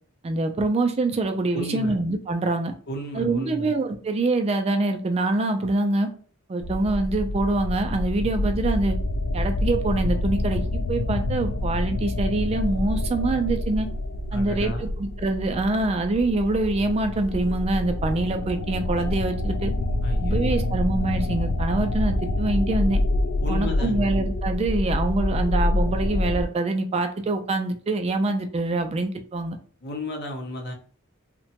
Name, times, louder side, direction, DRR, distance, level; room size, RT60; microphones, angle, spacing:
voice 1, 0.2-2.7 3.1-6.1 6.5-9.0 9.3-13.9 14.3-19.7 20.2-23.0 23.5-29.6, right 2 dB, 30° right, 6 dB, 0.3 m, -25 dB
voice 2, 1.5-2.0 2.9-3.7 8.2-8.3 14.3-14.9 20.0-20.7 23.4-24.2 29.8-30.7, left 1 dB, 55° left, 2 dB, 0.7 m, -33 dB
sound 1, 6.6-26.4, left 1 dB, 90° left, 0.4 m, -26 dB
2.9 x 2.2 x 2.8 m, 0.44 s
head